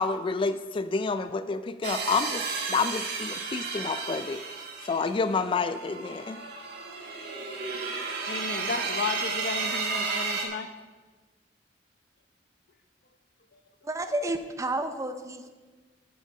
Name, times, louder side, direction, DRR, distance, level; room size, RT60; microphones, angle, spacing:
voice 1, 0.0-2.4 2.7-4.4 4.8-6.4, left 4 dB, 30° left, 12 dB, 0.3 m, -29 dB
sound 1, 1.8-10.5, right 4 dB, 60° right, 1.4 m, -33 dB
voice 2, 8.3-10.7 13.5-13.6, left 4 dB, 60° left, 7 dB, 0.8 m, -33 dB
voice 3, 13.8-15.5, right 1 dB, 15° right, 8 dB, 0.6 m, -31 dB
9.5 x 7.3 x 4.8 m, 1.3 s
head